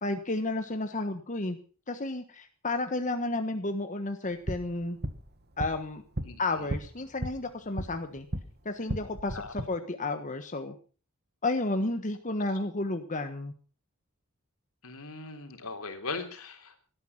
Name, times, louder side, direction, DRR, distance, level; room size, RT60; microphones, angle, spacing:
voice 1, 0.0-1.6 1.9-5.0 5.6-6.0 6.4-8.3 8.6-10.7 11.4-13.5, left 2 dB, 35° left, 7 dB, 1.4 m, -32 dB
sound 1, 4.2-8.5 8.8-9.6, right 1 dB, 50° right, 1.9 m, -36 dB
voice 2, 6.2-6.7 9.3-9.7 14.8-16.8, left 3 dB, 80° left, 6 dB, 3.6 m, -40 dB
18.0 x 13.0 x 5.9 m, 0.39 s
head